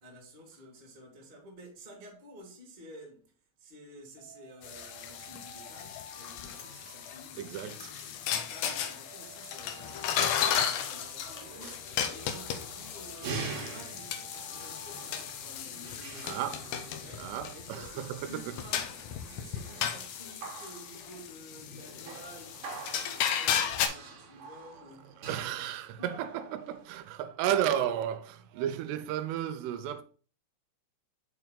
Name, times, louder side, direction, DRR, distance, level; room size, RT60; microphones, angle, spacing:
voice 1, 0.0-19.0 19.2-25.1 28.4-28.5, equal, 20° right, 1.3 m, -52 dB
Alarm, 4.2-7.9 8.6-12.3 12.9-16.2, equal, 50° left, 3.3 m, -54 dB
sound 1, 4.6-23.9, left 8 dB, 90° left, 1.8 m, -35 dB
voice 2, 7.4-7.9 11.6-11.7 16.2-16.6 17.2-18.2 25.2-30.0, right 10 dB, 85° right, 2.7 m, -33 dB
sound 2, 10.8-27.1, right 4 dB, 65° right, 2.1 m, -46 dB
6.4 x 4.6 x 3.9 m
omnidirectional pair, 4.7 m